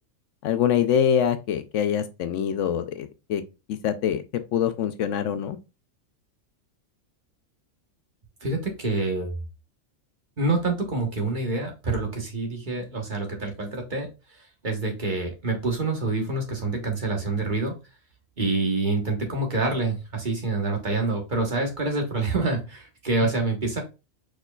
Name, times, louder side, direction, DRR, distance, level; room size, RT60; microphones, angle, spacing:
voice 1, 0.4-3.4 3.7-5.6, left 9 dB, 75° left, 0.9 m, -24 dB
voice 2, 8.4-9.3 10.4-17.8 18.4-23.8, right 3 dB, 40° right, 1.3 m, -27 dB
4.9 x 4.4 x 2.3 m
omnidirectional pair, 1.3 m